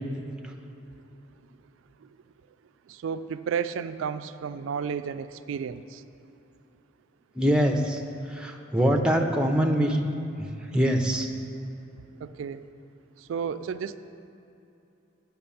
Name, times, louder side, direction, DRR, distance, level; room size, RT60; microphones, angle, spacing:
voice 1, 2.9-6.0 12.2-12.6 13.2-14.0, right 7 dB, 85° right, 11 dB, 0.3 m, -32 dB
voice 2, 7.4-8.0 8.3-10.0 10.4-10.5 10.7-11.3, equal, 5° right, 2 dB, 0.6 m, -23 dB
8.6 x 6.0 x 7.1 m, 2.9 s
head